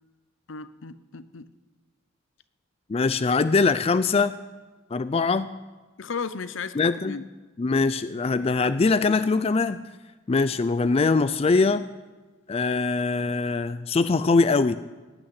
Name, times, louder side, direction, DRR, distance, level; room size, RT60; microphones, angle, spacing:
voice 1, 0.5-1.5 6.0-7.3, left 5 dB, 70° left, 14 dB, 0.7 m, -35 dB
voice 2, 2.9-4.4 4.9-5.5 6.8-7.2 7.6-9.9 10.3-11.8 12.5-14.7, left 4 dB, 30° left, 13 dB, 0.4 m, -22 dB
17.5 x 6.6 x 9.5 m, 1.3 s
head